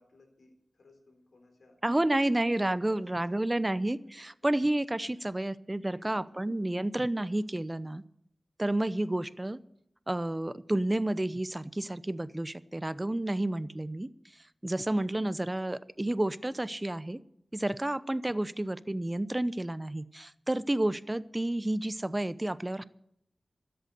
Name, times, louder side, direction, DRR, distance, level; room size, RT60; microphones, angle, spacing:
voice 1, 0.0-3.6 4.4-4.5 5.0-5.4 5.9-6.8 18.3-18.5, left 2 dB, 80° left, 3 dB, 3.8 m, -61 dB
voice 2, 1.8-8.0 8.6-9.6 10.1-17.2 17.5-22.8, right 1 dB, 25° right, 16 dB, 0.7 m, -30 dB
13.0 x 7.9 x 9.4 m, 0.75 s
cardioid pair, 40°, 0 cm